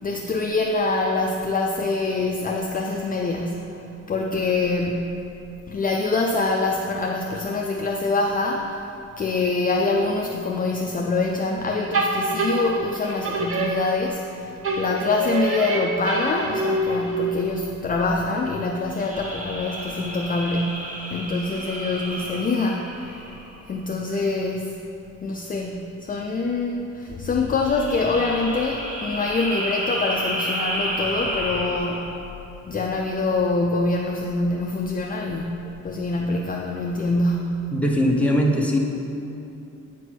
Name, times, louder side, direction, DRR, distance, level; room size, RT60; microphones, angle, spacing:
voice 1, 0.0-3.7 4.1-5.3 5.7-8.8 9.2-23.2 23.7-24.8 25.2-32.3 32.6-37.7, left 3 dB, 30° left, 0 dB, 0.5 m, -25 dB
sound 1, 11.9-14.3 14.6-17.5, right 2 dB, 45° right, 1.0 m, -26 dB
sound 2, 18.9-23.7 27.5-32.2, right 1 dB, 25° right, 1.1 m, -31 dB
voice 2, 37.7-38.8, equal, 5° left, -1 dB, 0.8 m, -20 dB
8.8 x 4.5 x 6.2 m, 2.8 s
cardioid pair, 140°, 31 cm